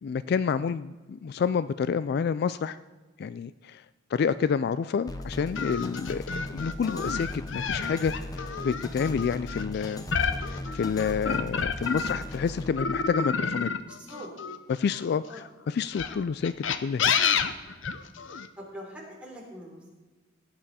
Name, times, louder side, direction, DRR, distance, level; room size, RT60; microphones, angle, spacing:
voice 1, 0.0-2.8 3.2-3.8 4.1-6.2 6.5-8.1 8.6-10.1 10.5-13.7 14.7-15.2 15.7-16.5 16.8-17.1, left 6 dB, 55° left, 15 dB, 0.3 m, -28 dB
sound 1, 5.1-12.7, left 1 dB, 20° left, 0.9 m, -39 dB
sound 2, 5.6-12.4 12.8-15.1 15.8-18.5, left 6 dB, 75° left, 0.7 m, -29 dB
voice 2, 12.1-12.5 13.9-14.3 14.6-14.7 15.3-15.4 16.0-16.2 17.3-17.6 18.6-19.9, equal, 5° right, -3 dB, 3.4 m, -45 dB
16.0 x 8.9 x 4.2 m, 1.3 s
head